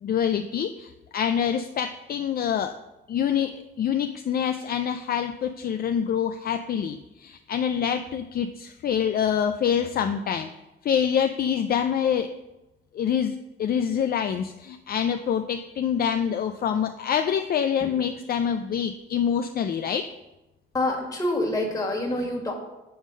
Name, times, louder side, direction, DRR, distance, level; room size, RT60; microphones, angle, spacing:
voice 1, 0.0-2.8 3.1-10.5 10.8-12.3 12.9-13.3 13.6-20.1, left 8 dB, 50° left, 7 dB, 0.4 m, -26 dB
voice 2, 20.7-22.5, left 1 dB, 15° left, -1 dB, 1.8 m, -27 dB
7.0 x 3.7 x 6.3 m, 1.0 s
cardioid pair, 90°, 20 cm